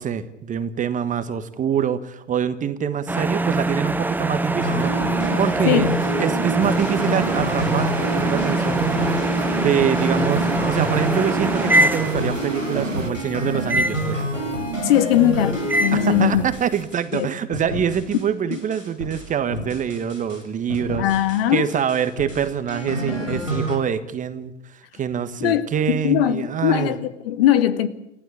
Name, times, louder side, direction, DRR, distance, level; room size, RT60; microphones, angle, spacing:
voice 1, 0.0-5.9 6.2-8.8 9.6-14.4 15.9-21.1 21.5-26.9, right 8 dB, 20° right, 11 dB, 1.4 m, -25 dB
sound 1, 3.1-12.6 13.7-14.1 15.7-16.1, right 2 dB, 5° right, 1.0 m, -23 dB
sound 2, 4.6-17.2 17.5-18.2 18.5-20.4 20.7-21.4 21.7-23.8, equal, 85° left, 6.7 m, -28 dB
sound 3, 6.6-13.1, right 3 dB, 90° right, 1.6 m, -33 dB
voice 2, 14.8-16.4 17.1-17.3 18.5-18.6 21.0-21.7 25.4-27.9, left 11 dB, 50° left, 12 dB, 2.1 m, -20 dB
29.0 x 15.5 x 8.7 m, 0.84 s
figure-of-eight pair, 95°, 37 cm